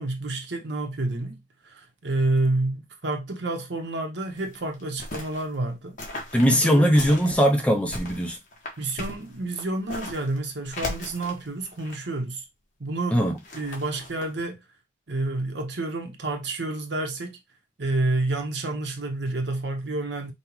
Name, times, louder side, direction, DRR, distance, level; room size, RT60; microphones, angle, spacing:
voice 1, 0.0-6.0 6.4-7.0 8.8-12.4 12.8-13.2 13.5-14.6 15.1-17.4 17.8-20.3, right 2 dB, 65° right, 0.9 m, -29 dB
sound 1, 4.3-5.4 6.0-7.3 7.7-10.4 10.6-12.2 13.2-14.2, left 1 dB, 40° left, 1.2 m, -37 dB
voice 2, 6.3-8.4 13.1-13.4, equal, 5° left, 0.5 m, -20 dB
5.4 x 2.3 x 3.0 m
head